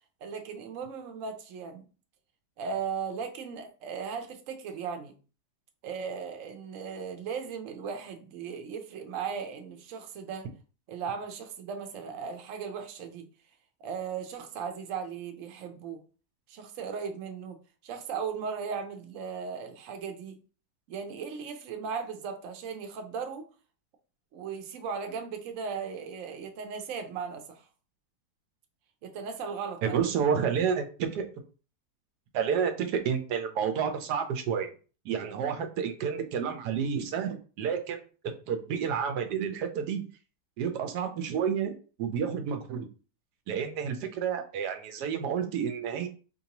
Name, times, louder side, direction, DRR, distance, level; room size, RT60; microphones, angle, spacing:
voice 1, 0.2-1.8 2.6-5.1 5.8-10.5 10.9-13.3 13.8-16.0 16.5-17.6 17.8-20.4 20.9-23.4 24.3-27.6 29.0-30.0, right 6 dB, 60° right, 1.0 m, -37 dB
voice 2, 29.8-31.3 32.3-34.7 35.0-40.0 40.6-41.7 42.0-42.9 43.5-46.1, right 7 dB, 80° right, 1.2 m, -30 dB
4.4 x 2.6 x 2.9 m
omnidirectional pair, 1.8 m